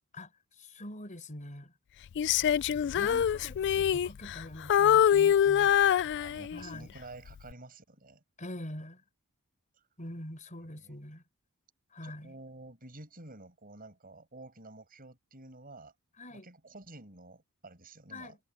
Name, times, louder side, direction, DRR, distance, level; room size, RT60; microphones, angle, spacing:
voice 1, 0.6-1.7 2.9-5.8 6.5-6.9 8.4-9.0 10.0-11.2 11.9-12.3 16.2-16.5 18.1-18.4, left 1 dB, 35° left, 4.4 m, -44 dB
Female singing, 2.2-4.4 4.7-6.7 7.3-7.5, left 9 dB, 50° left, 0.3 m, -25 dB
voice 2, 6.2-8.2 10.6-11.0 12.0-15.9 16.3-18.4, right 2 dB, 40° right, 7.1 m, -50 dB
head